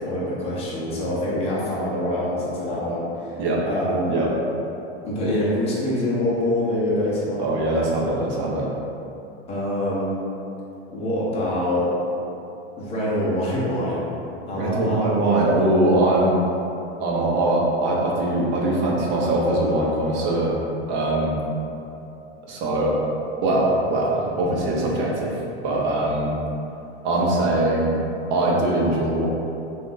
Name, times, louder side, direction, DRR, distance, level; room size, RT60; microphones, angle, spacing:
voice 1, 0.0-3.4 3.7-4.1 5.0-7.5 9.5-10.1 10.9-11.9 12.8-14.1 14.5-15.0, left 1 dB, 20° left, -7 dB, 0.8 m, -25 dB
voice 2, 7.4-8.7 14.6-16.4 17.0-20.5 20.9-21.4 22.5-23.0 23.4-25.3 25.6-26.4 27.0-28.0 28.3-29.3, right 1 dB, 35° right, -3 dB, 0.8 m, -21 dB
3.5 x 2.6 x 3.8 m, 2.8 s
supercardioid pair, 140°, 32 cm